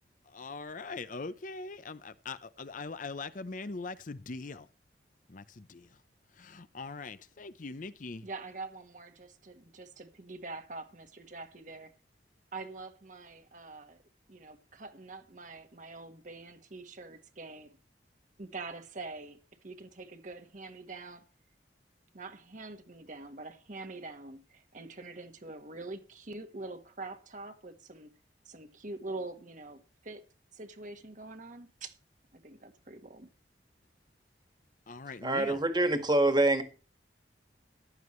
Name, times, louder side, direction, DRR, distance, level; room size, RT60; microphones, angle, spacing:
voice 1, 0.3-4.7 5.3-5.9 6.3-8.3 34.9-35.6, left 3 dB, 50° left, 0.7 m, -41 dB
voice 2, 8.2-11.9 12.5-14.0 14.3-17.8 18.4-19.4 19.6-21.2 22.1-28.1 28.4-30.2 30.5-31.9 32.3-33.3, right 3 dB, 45° right, 1.4 m, -45 dB
voice 3, 35.2-36.6, right 2 dB, 25° right, 1.8 m, -25 dB
14.5 x 11.5 x 3.2 m
head